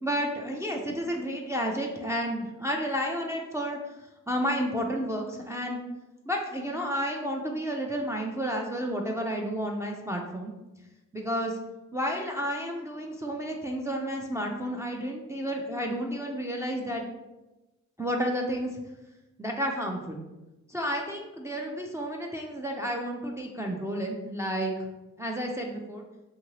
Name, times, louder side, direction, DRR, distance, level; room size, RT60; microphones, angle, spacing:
voice 1, 0.0-3.8 4.3-5.8 6.2-10.5 11.1-11.6 11.9-17.0 18.0-18.8 19.4-20.2 20.7-24.9 25.2-26.0, equal, 10° right, 0 dB, 0.4 m, -31 dB
2.8 x 2.6 x 3.0 m, 1.0 s
cardioid pair, 45°, 31 cm